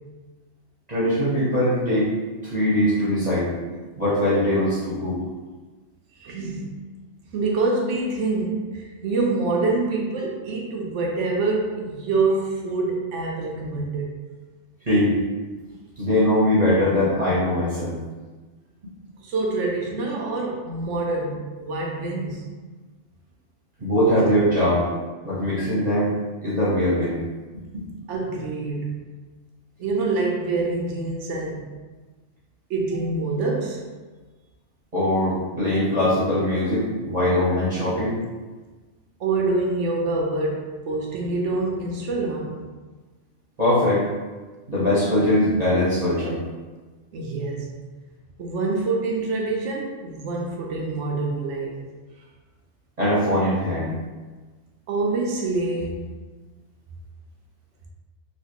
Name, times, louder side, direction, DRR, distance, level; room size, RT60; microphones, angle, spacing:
voice 1, 0.9-2.1 2.4-3.5 4.0-5.2 14.9-15.1 16.0-18.0 23.8-24.9 25.2-26.1 26.4-27.2 27.7-27.8 34.9-38.2 43.6-44.1 44.7-46.4 53.0-53.9, left 1 dB, 35° right, -10 dB, 0.9 m, -21 dB
voice 2, 6.2-6.8 7.3-14.1 19.2-22.4 28.1-29.1 29.8-31.7 32.7-33.9 39.2-42.7 47.1-47.8 48.4-51.8 54.9-56.1, right 3 dB, 70° right, -1 dB, 0.9 m, -26 dB
3.2 x 2.9 x 2.8 m, 1.3 s
omnidirectional pair, 1.3 m